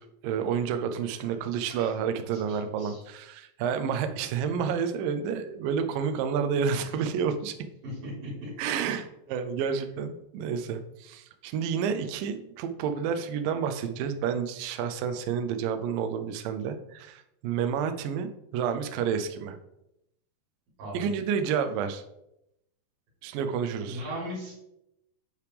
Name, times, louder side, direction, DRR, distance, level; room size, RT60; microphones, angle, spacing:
voice 1, 0.2-7.5 8.6-19.6 20.9-22.0 23.2-24.0, right 7 dB, 90° right, 8 dB, 1.9 m, -30 dB
voice 2, 2.3-3.0 7.8-8.5 20.8-21.1 23.8-24.5, equal, 60° right, -9 dB, 4.8 m, -38 dB
9.7 x 5.0 x 3.3 m, 0.84 s
omnidirectional pair, 4.8 m